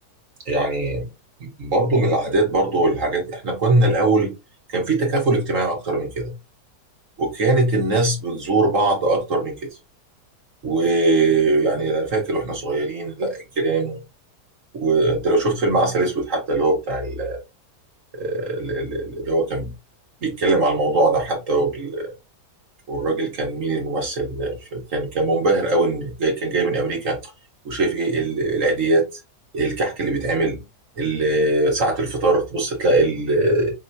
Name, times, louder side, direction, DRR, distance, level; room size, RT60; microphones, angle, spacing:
voice 1, 0.4-1.1 1.4-4.3 4.7-6.3 7.2-9.7 10.6-14.0 14.7-17.4 18.2-19.7 20.2-22.1 22.9-27.3 27.6-29.2 29.5-30.6 31.0-33.7, right 2 dB, 50° right, 1.7 m, -21 dB
5.7 x 2.9 x 2.7 m
omnidirectional pair, 1.8 m